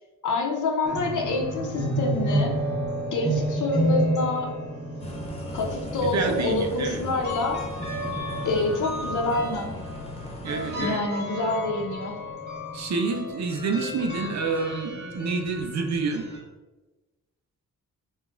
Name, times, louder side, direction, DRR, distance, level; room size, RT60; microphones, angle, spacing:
voice 1, 0.2-2.6 3.1-4.5 5.5-7.6 8.4-9.7 10.8-12.1, left 3 dB, 70° left, 1 dB, 0.9 m, -27 dB
sound 1, 0.8-16.4, equal, 30° right, 1.1 m, -31 dB
sound 2, 5.0-10.9, left 1 dB, 20° left, 0.5 m, -37 dB
voice 2, 6.0-7.0 10.4-11.0 12.7-16.3, right 4 dB, 60° right, 4 dB, 0.7 m, -28 dB
5.1 x 2.4 x 3.8 m, 1.1 s
wide cardioid pair, 175°, 31 cm